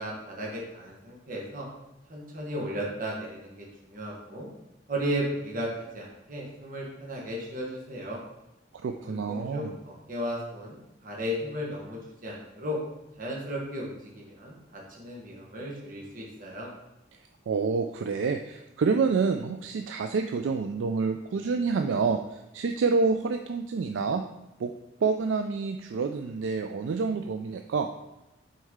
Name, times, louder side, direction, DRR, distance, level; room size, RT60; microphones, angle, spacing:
voice 1, 0.0-1.7 2.1-4.5 4.9-8.2 9.0-12.8 13.2-16.7, equal, 45° right, -3 dB, 1.2 m, -35 dB
voice 2, 8.8-9.8 17.5-24.2 24.6-24.7 25.0-27.9, right 4 dB, 75° right, 6 dB, 0.4 m, -28 dB
6.3 x 4.3 x 3.6 m, 0.95 s
head